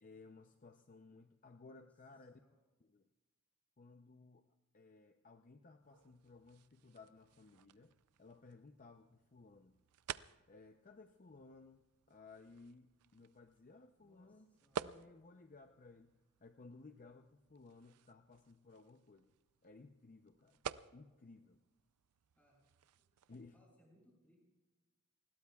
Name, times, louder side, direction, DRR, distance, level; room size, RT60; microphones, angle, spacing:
voice 1, 0.0-2.4 2.8-3.0 3.8-4.5 4.7-9.8 10.5-14.5 14.8-19.3 19.6-20.6 20.9-21.6 23.3-23.6, left 3 dB, 35° left, 6 dB, 0.6 m, -59 dB
voice 2, 2.1-2.6 14.0-14.9 22.4-22.6 23.4-24.4, equal, 5° left, -3 dB, 7.5 m, -71 dB
sound 1, 5.8-23.5, right 8 dB, 85° right, 0.5 m, -53 dB
30.0 x 20.5 x 2.4 m, 1.2 s
head